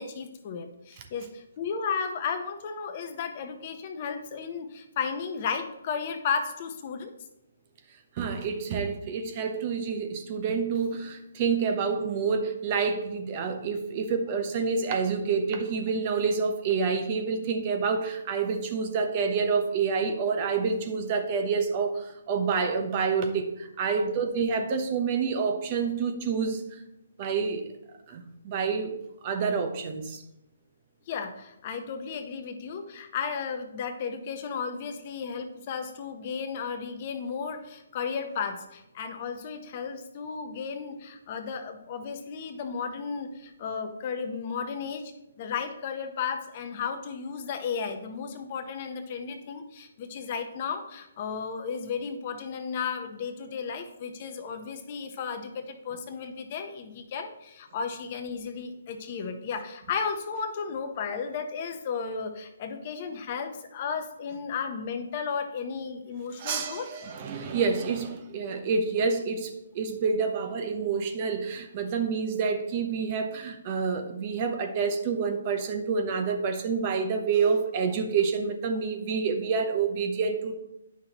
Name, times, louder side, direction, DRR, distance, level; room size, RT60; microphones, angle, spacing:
voice 1, 0.0-7.1 24.0-24.2 31.1-66.9, left 6 dB, 40° left, 6 dB, 0.9 m, -34 dB
voice 2, 8.2-26.8 27.2-27.7 28.1-29.0 29.2-30.2 66.4-80.5, right 5 dB, 35° right, 5 dB, 1.0 m, -28 dB
9.4 x 5.9 x 3.0 m, 0.86 s
hypercardioid pair, 145°, 0 cm